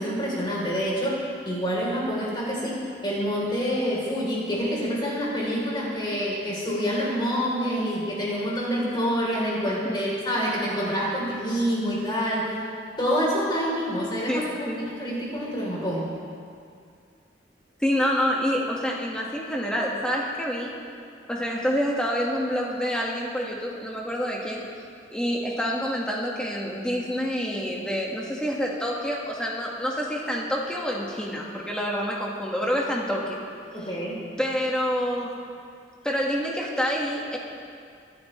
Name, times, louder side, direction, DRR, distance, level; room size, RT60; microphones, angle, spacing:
voice 1, 0.0-12.6 13.0-16.1 33.7-34.2, equal, 25° left, -5 dB, 3.7 m, -27 dB
voice 2, 14.3-14.8 17.8-20.7 21.3-24.6 25.1-33.4 34.4-35.3 36.0-37.4, equal, 5° left, -3 dB, 1.7 m, -27 dB
25.0 x 10.5 x 3.3 m, 2.3 s
head